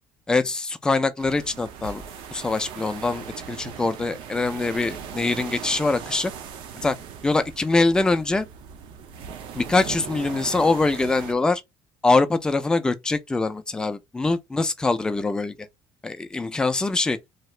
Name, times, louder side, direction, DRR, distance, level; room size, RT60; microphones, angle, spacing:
voice 1, 0.3-2.0 2.3-6.3 6.8-7.0 7.2-8.5 9.5-11.6 12.0-15.5 16.0-17.2, left 3 dB, 10° left, 0.3 m, -23 dB
sound 1, 1.2-11.3, right 7 dB, 70° right, 0.6 m, -39 dB
sound 2, 1.8-3.1, right 4 dB, 30° right, 0.7 m, -44 dB
2.8 x 2.4 x 3.1 m
cardioid pair, 150°, 9 cm